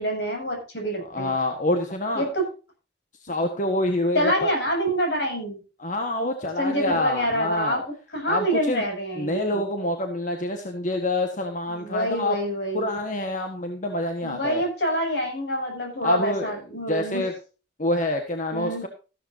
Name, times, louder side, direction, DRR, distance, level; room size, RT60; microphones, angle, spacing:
voice 1, 0.0-1.3 2.1-2.4 4.1-5.6 6.6-7.8 8.1-9.7 11.7-13.0 14.2-17.2 18.5-18.8, equal, 80° left, 2 dB, 7.4 m, -26 dB
voice 2, 1.1-2.3 3.2-4.5 5.8-7.8 8.3-8.8 9.2-12.4 12.7-14.6 16.0-16.5 16.9-17.3 17.8-18.9, left 1 dB, 45° left, 4 dB, 1.5 m, -27 dB
14.5 x 12.0 x 2.8 m, 0.33 s
head